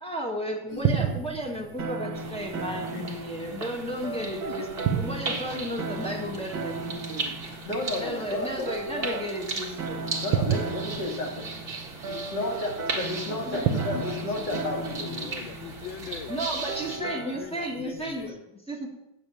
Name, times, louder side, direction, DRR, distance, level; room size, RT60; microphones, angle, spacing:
voice 1, 0.0-7.4 7.9-10.1 13.5-13.8 16.3-18.9, equal, 5° left, -3 dB, 1.7 m, -34 dB
voice 2, 0.7-1.1 7.6-9.2 10.2-11.5 12.1-15.3, left 2 dB, 60° left, 0 dB, 2.7 m, -32 dB
sound 1, 0.7-18.3, right 8 dB, 80° right, 1.5 m, -35 dB
sound 2, 1.8-17.7, right 3 dB, 65° right, 2.1 m, -37 dB
sound 3, 2.1-17.0, right 3 dB, 30° right, 1.6 m, -37 dB
voice 3, 4.2-4.7 13.5-16.3 16.8-18.4, left 10 dB, 80° left, 9 dB, 1.4 m, -40 dB
8.1 x 7.6 x 8.5 m, 0.87 s
omnidirectional pair, 2.1 m